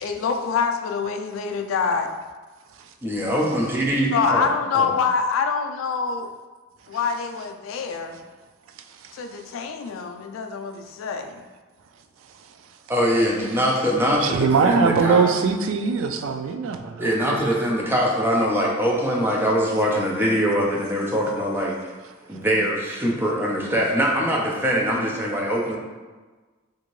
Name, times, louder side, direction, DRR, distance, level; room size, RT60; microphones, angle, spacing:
voice 1, 0.0-2.1 4.1-6.3 6.9-8.2 9.1-11.4, left 5 dB, 80° left, 5 dB, 0.3 m, -25 dB
voice 2, 3.0-4.5 4.7-4.9 12.9-15.3 17.0-21.8 22.3-25.8, equal, 10° right, -3 dB, 0.5 m, -22 dB
voice 3, 14.2-17.3, right 5 dB, 75° right, 7 dB, 0.3 m, -22 dB
2.7 x 2.5 x 3.0 m, 1.3 s
head